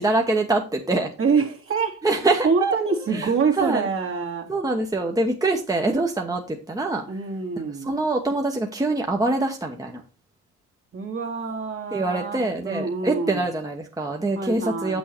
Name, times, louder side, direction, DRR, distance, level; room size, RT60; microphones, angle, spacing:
voice 1, 0.0-1.1 2.0-2.7 3.1-3.3 3.6-3.9 4.5-7.0 7.8-10.0 11.9-15.0, right 2 dB, 10° right, 1.1 m, -24 dB
voice 2, 1.2-2.1 2.4-4.5 7.1-7.9 10.9-13.5 14.4-15.0, right 5 dB, 45° right, 2.1 m, -26 dB
7.6 x 6.3 x 4.4 m
cardioid pair, 90°, 30 cm